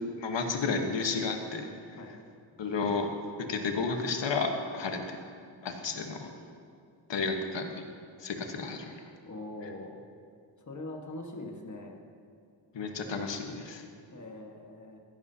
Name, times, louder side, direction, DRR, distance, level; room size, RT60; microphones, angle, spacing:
voice 1, 0.2-1.7 2.6-3.1 3.5-5.2 5.6-6.3 7.1-7.7 8.2-8.9 12.7-13.8, left 4 dB, 70° left, 4 dB, 1.3 m, -32 dB
voice 2, 9.2-10.0 10.7-12.0 14.1-15.0, left 2 dB, 40° left, 2 dB, 1.5 m, -42 dB
15.5 x 11.0 x 2.8 m, 2.3 s
cardioid pair, 75°, 46 cm